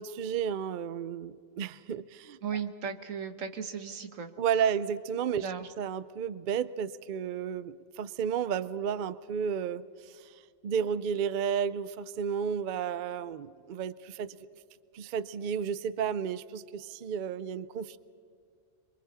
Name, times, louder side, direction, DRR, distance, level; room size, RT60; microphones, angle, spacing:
voice 1, 0.0-2.4 4.4-5.5 5.8-10.3 10.6-14.3 14.9-18.0, right 7 dB, 55° right, 16 dB, 0.6 m, -32 dB
voice 2, 2.4-4.3 5.3-5.7, right 7 dB, 85° right, 8 dB, 1.5 m, -36 dB
27.0 x 23.5 x 4.1 m, 2.3 s
omnidirectional pair, 1.3 m